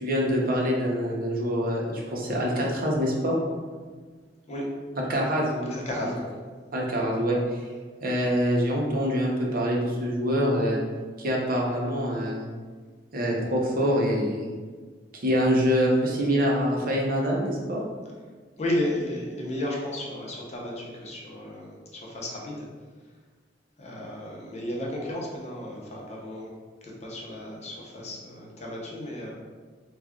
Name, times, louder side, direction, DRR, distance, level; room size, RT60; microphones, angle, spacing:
voice 1, 0.0-3.4 5.1-6.1 6.7-7.6 8.0-10.8 11.2-12.4 13.1-14.5 15.2-17.8, equal, 55° right, -2 dB, 0.7 m, -25 dB
voice 2, 5.7-6.3 18.6-22.7 23.8-26.5 26.8-29.3, left 1 dB, 40° left, -3 dB, 0.7 m, -33 dB
3.3 x 2.3 x 3.6 m, 1.5 s
head